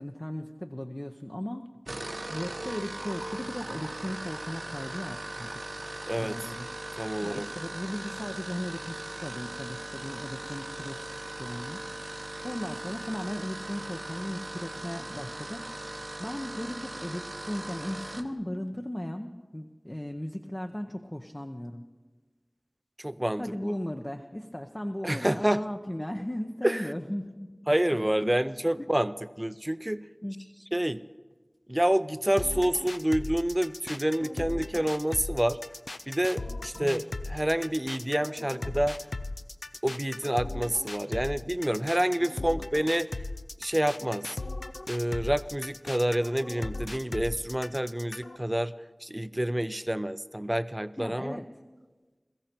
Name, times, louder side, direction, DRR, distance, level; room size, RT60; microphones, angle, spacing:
voice 1, 0.0-1.7 2.3-5.7 6.1-6.7 7.2-11.8 12.4-15.7 16.2-21.9 23.4-27.5 27.9-28.3 28.8-28.9 30.2-30.4 36.8-37.0 51.0-51.5, left 1 dB, 25° left, 4 dB, 0.8 m, -37 dB
sound 1, 1.7-18.3, right 1 dB, 65° right, 0.9 m, -39 dB
voice 2, 6.1-6.5 7.0-7.5 23.0-23.4 25.0-25.6 26.6-26.9 27.7-30.1 30.7-31.0 31.7-35.6 36.1-39.0 39.8-43.1 43.6-44.4 44.9-48.7 49.0-51.4, right 1 dB, 20° right, 14 dB, 0.5 m, -28 dB
sound 2, 32.4-48.4, left 2 dB, 80° left, 0.5 m, -37 dB
22.0 x 14.5 x 4.4 m, 1.3 s
wide cardioid pair, 40°, 0 cm